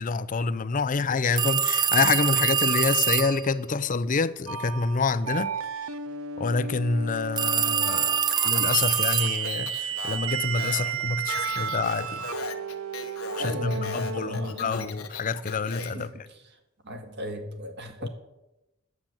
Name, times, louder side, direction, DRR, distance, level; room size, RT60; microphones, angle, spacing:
voice 1, 0.0-5.5 6.4-8.2 8.4-12.3 13.4-16.1 18.0-18.1, left 4 dB, 40° left, 0.5 m, -27 dB
sound 1, 1.4-3.5 7.4-9.6, right 8 dB, 20° right, 0.3 m, -24 dB
sound 2, 4.5-14.7, right 6 dB, 75° right, 0.7 m, -33 dB
Speech, 8.3-16.1, left 5 dB, 85° left, 1.3 m, -39 dB
voice 2, 13.4-14.9 15.9-16.1 16.8-18.1, left 1 dB, 55° right, 1.9 m, -36 dB
9.8 x 7.4 x 8.9 m
head